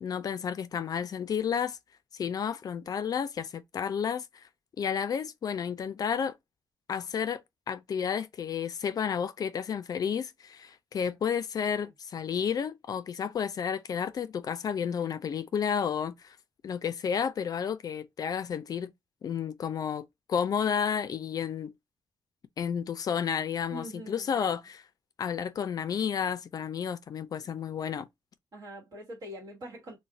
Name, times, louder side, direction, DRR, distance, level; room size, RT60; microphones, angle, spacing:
voice 1, 0.0-1.8 2.1-4.5 4.8-6.3 6.9-16.4 16.6-18.9 19.2-21.7 22.6-24.8 25.2-28.1, left 7 dB, 50° left, 0.3 m, -31 dB
voice 2, 23.7-24.5 27.4-27.5 28.5-30.0, equal, 55° right, 1.2 m, -44 dB
2.4 x 2.1 x 3.8 m
cardioid pair, 105°, 8 cm